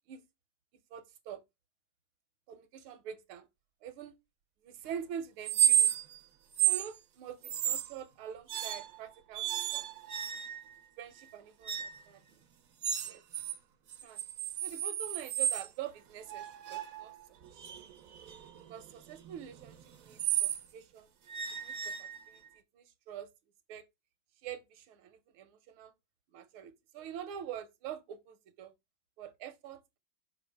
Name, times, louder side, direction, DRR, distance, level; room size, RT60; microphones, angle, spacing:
voice 1, 0.9-1.4 2.5-3.5 3.8-4.1 4.6-5.9 6.6-9.8 11.0-12.2 13.0-13.2 14.0-14.2 14.6-17.1 17.5-17.8 18.7-21.1 21.6-22.4 22.7-23.3 23.7-23.8 24.4-25.9 26.3-28.7 29.2-30.0, right 9 dB, 80° right, 1.7 m, -45 dB
sound 1, 5.4-6.2 6.5-6.9 7.4-7.9 8.5-9.0 9.3-10.7 11.6-12.0 12.8-13.6 13.9-15.7 16.3-20.6 21.3-22.5, right 10 dB, 60° right, 0.9 m, -32 dB
5.8 x 5.2 x 3.4 m
omnidirectional pair, 2.3 m